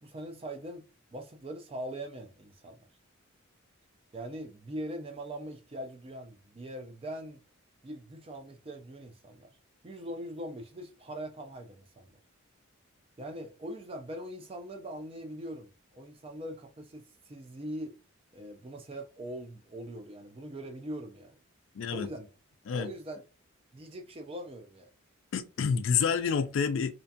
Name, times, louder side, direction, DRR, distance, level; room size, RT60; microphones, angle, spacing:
voice 1, 0.0-2.9 4.1-7.4 7.8-9.6 9.8-12.2 13.2-18.0 18.3-21.4 21.9-22.3 22.7-23.2 23.7-24.9, right 1 dB, 25° right, 0.4 m, -42 dB
voice 2, 21.8-22.1 22.7-22.9 25.3-26.9, left 6 dB, 65° left, 0.3 m, -28 dB
2.5 x 2.3 x 2.5 m
head